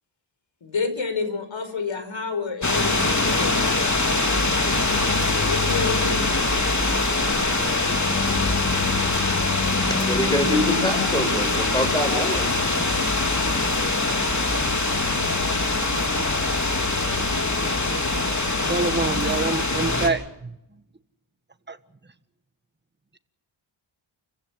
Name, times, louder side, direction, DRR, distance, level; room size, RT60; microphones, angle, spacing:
voice 1, 0.6-3.7 5.3-6.2 7.2-7.7, left 4 dB, 65° left, 9 dB, 5.3 m, -29 dB
sound 1, 2.6-20.1, left 3 dB, 35° left, 3.7 m, -23 dB
voice 2, 10.0-12.5, left 1 dB, 10° left, 7 dB, 6.0 m, -25 dB
voice 3, 18.6-20.5 21.7-21.8, right 3 dB, 20° right, 10 dB, 1.5 m, -26 dB
29.5 x 16.0 x 7.7 m, 0.85 s
wide cardioid pair, 75°, 50 cm